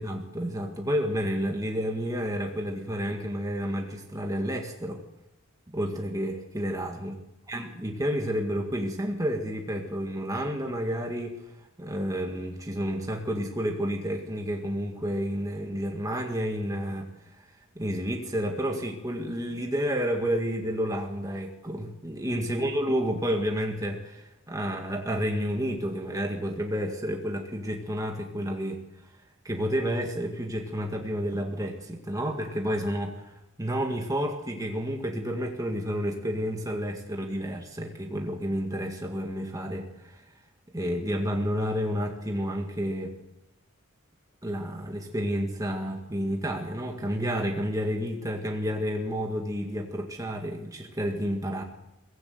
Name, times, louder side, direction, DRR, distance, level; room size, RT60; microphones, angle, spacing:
voice 1, 0.0-5.0 5.7-7.2 7.5-11.4 11.8-28.8 29.5-33.3 33.6-40.2 40.7-43.2 44.4-51.6, equal, 15° right, 2 dB, 1.8 m, -30 dB
22.5 x 16.5 x 7.8 m, 0.93 s
head